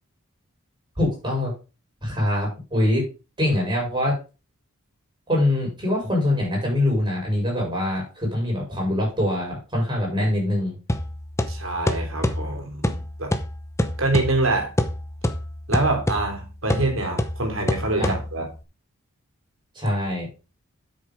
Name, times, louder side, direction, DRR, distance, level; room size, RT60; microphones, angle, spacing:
voice 1, 1.0-1.5 2.0-3.0 3.4-4.2 5.3-10.8 18.0-18.1 19.7-20.3, left 1 dB, 20° right, -1 dB, 5.2 m, -23 dB
sound 1, 10.9-18.6, left 1 dB, 15° left, 0.8 m, -27 dB
voice 2, 11.5-13.3 14.0-14.7 15.7-18.5, right 2 dB, 60° right, 3 dB, 3.3 m, -25 dB
8.4 x 6.7 x 5.3 m, 0.31 s
head